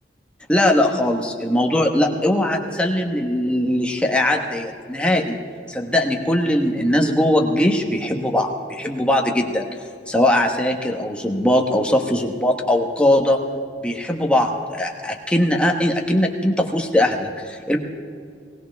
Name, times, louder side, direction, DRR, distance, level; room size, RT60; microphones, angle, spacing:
voice 1, 0.5-5.4 5.7-9.7 10.1-13.4 13.8-17.8, left 1 dB, 5° left, 1 dB, 1.2 m, -20 dB
19.5 x 17.0 x 3.5 m, 2.3 s
head